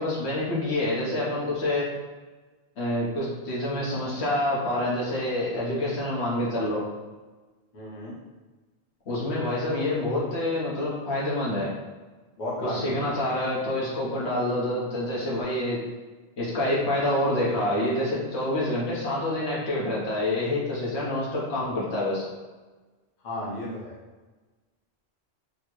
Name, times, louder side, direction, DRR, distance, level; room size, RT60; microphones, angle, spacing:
voice 1, 0.0-1.9 2.8-6.9 9.1-11.7 12.6-15.8 16.4-22.3, left 1 dB, 75° left, -5 dB, 1.2 m, -27 dB
voice 2, 7.7-8.2 12.4-13.2 23.2-24.0, left 1 dB, 45° left, -5 dB, 0.8 m, -34 dB
4.1 x 2.0 x 3.0 m, 1.3 s
omnidirectional pair, 1.2 m